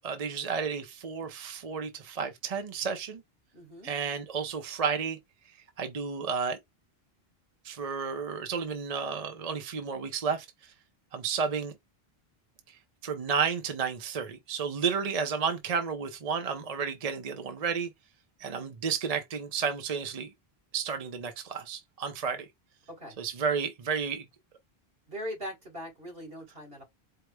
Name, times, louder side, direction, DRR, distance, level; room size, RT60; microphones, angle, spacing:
voice 1, 0.0-3.2 3.8-5.2 5.8-6.6 7.6-10.7 11.1-11.7 12.7-17.9 18.4-20.3 20.7-22.5 23.2-24.3, right 6 dB, 45° right, 0.7 m, -32 dB
voice 2, 3.5-3.9 22.9-23.2 25.1-26.8, equal, 65° right, 3.0 m, -40 dB
4.7 x 2.0 x 4.6 m
omnidirectional pair, 1.0 m